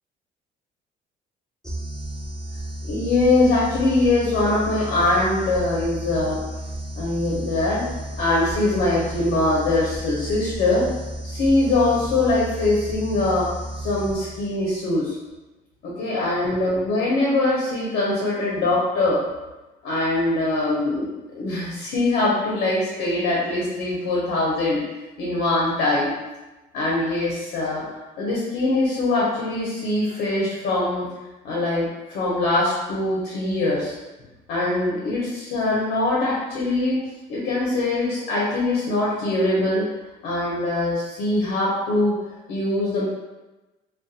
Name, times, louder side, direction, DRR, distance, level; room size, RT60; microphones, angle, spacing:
sound 1, 1.6-14.8, right 1 dB, 5° left, 0.4 m, -33 dB
voice 1, 2.9-6.4 7.0-7.9 8.2-10.9 11.2-13.5 13.8-15.1 15.8-19.2 19.8-24.8 25.2-26.1 26.7-27.8 28.2-31.1 31.4-33.9 34.5-37.0 37.3-39.8 40.2-42.2 42.5-43.1, left 2 dB, 80° left, -5 dB, 0.7 m, -22 dB
2.3 x 2.3 x 2.6 m, 1.1 s
cardioid pair, 110°, 17 cm